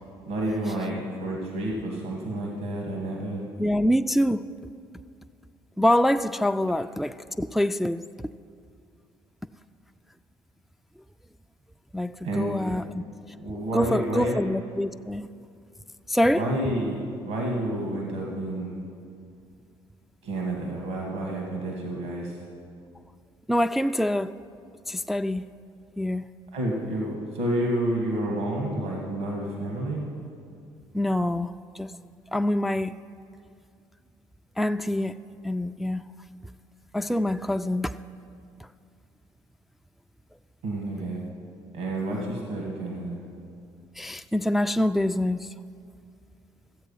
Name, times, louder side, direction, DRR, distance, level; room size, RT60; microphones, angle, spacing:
voice 1, 0.3-3.4 12.2-12.9 13.4-14.4 16.3-18.8 20.2-22.4 26.5-30.0 40.6-41.2 41.7-43.2, right 1 dB, 80° right, 1.8 m, -30 dB
voice 2, 3.6-4.4 5.8-8.0 11.9-13.0 13.5-15.3 16.1-16.5 23.5-24.3 24.9-25.4 26.0-26.2 30.9-31.9 32.3-32.9 34.6-35.1 35.4-36.0 36.9-38.0 44.0-45.5, left 1 dB, ahead, 0.3 m, -25 dB
13.5 x 8.0 x 5.6 m
hypercardioid pair, 55°, 12 cm